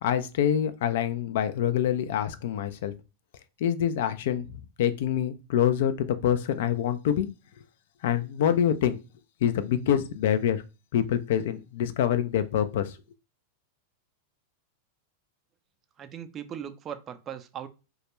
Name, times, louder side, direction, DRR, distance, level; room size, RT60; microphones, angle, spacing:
voice 1, 0.0-2.9 3.6-7.3 8.0-9.0 9.4-10.6 10.9-13.0, left 9 dB, 65° left, 0.3 m, -26 dB
voice 2, 16.0-17.7, right 9 dB, 30° right, 0.4 m, -38 dB
2.2 x 2.1 x 3.0 m
hypercardioid pair, 110°, 0 cm